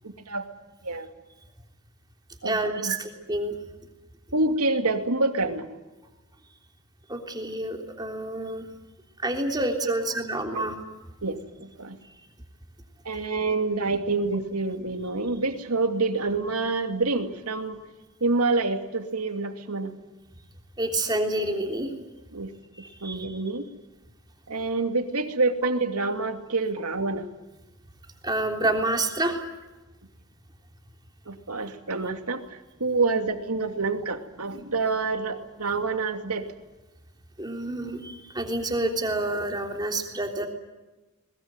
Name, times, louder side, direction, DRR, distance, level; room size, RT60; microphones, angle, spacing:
voice 1, 0.0-0.5 0.8-1.1 2.4-3.0 4.3-5.7 9.8-10.0 10.5-10.7 11.2-12.0 13.0-17.8 18.2-20.0 22.3-22.5 23.0-23.7 24.5-27.3 31.3-36.5, right 3 dB, 85° right, 6 dB, 2.5 m, -27 dB
voice 2, 2.4-3.5 7.1-8.6 9.2-10.7 20.8-21.9 23.0-23.2 28.2-29.4 37.4-40.5, right 2 dB, 20° right, 3 dB, 3.3 m, -28 dB
21.5 x 21.0 x 9.2 m, 1.1 s
head